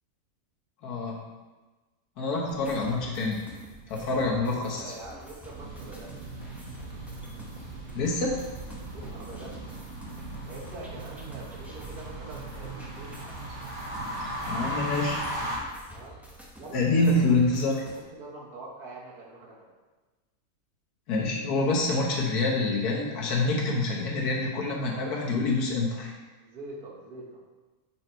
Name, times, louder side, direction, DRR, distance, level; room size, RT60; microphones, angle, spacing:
voice 1, 0.8-1.2 2.2-3.4 3.9-4.9 8.0-8.4 14.5-15.2 16.7-17.8 21.1-26.1, left 2 dB, 80° left, -2 dB, 1.6 m, -26 dB
sound 1, 2.4-18.0, right 1 dB, ahead, 0.6 m, -49 dB
voice 2, 4.5-6.2 8.9-9.6 10.5-13.2 15.9-16.2 16.6-17.4 17.9-19.7 26.4-27.4, right 2 dB, 80° right, -4 dB, 1.9 m, -44 dB
sound 2, 5.5-15.6, right 1 dB, 50° right, 1.4 m, -37 dB
5.5 x 4.5 x 4.5 m, 1.2 s
omnidirectional pair, 1.6 m